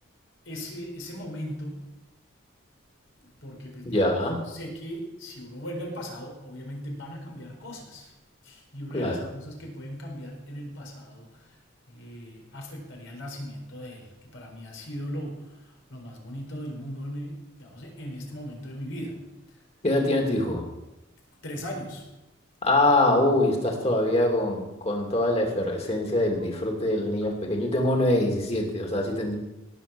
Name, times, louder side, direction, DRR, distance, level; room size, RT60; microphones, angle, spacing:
voice 1, 0.4-1.9 3.2-4.0 4.5-8.1 8.4-11.6 11.9-19.6 21.4-22.1 26.4-26.5, equal, 80° left, 0 dB, 4.3 m, -38 dB
voice 2, 3.8-4.4 8.9-9.2 19.8-20.6 22.6-29.4, left 1 dB, 30° left, 1 dB, 2.6 m, -24 dB
17.5 x 6.8 x 7.0 m, 0.97 s
head